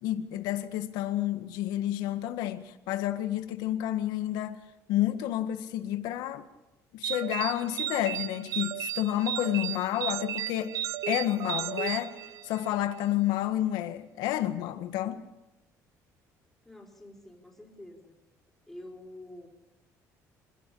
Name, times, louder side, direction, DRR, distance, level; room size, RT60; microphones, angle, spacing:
voice 1, 0.0-4.6 4.9-6.5 6.9-10.7 11.1-12.2 12.4-15.2, left 13 dB, 85° left, 1.8 m, -30 dB
sound 1, 7.0-12.8, right 11 dB, 60° right, 0.8 m, -34 dB
voice 2, 16.6-18.1 18.7-19.5, left 1 dB, 5° left, 4.4 m, -47 dB
25.0 x 16.5 x 8.7 m
cardioid pair, 155°, 7 cm